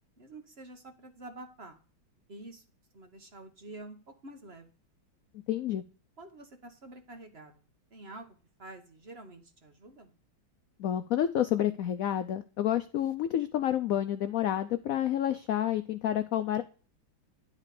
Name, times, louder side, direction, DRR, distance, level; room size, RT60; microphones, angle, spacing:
voice 1, 0.0-1.8 2.3-2.6 2.9-4.7 6.2-7.5 7.9-10.1, right 2 dB, 35° right, 5 dB, 1.3 m, -48 dB
voice 2, 5.5-5.8 10.8-16.6, left 11 dB, 85° left, 10 dB, 0.7 m, -29 dB
10.5 x 4.1 x 6.6 m, 0.37 s
omnidirectional pair, 2.1 m